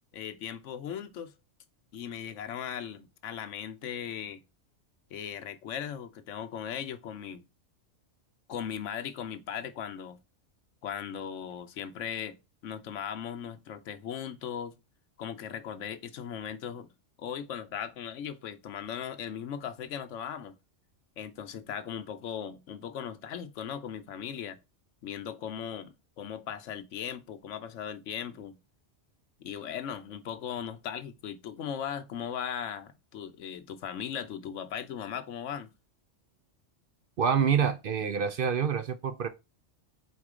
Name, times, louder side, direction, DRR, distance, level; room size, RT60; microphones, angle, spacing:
voice 1, 0.1-1.3 1.9-4.4 5.1-7.4 8.5-10.2 10.8-12.4 12.6-14.8 15.2-16.9 17.2-20.6 21.2-24.6 25.0-28.6 29.4-35.7, left 8 dB, 80° left, 1.1 m, -38 dB
voice 2, 37.2-39.3, right 7 dB, 55° right, 0.7 m, -27 dB
4.4 x 4.3 x 4.8 m
omnidirectional pair, 1.2 m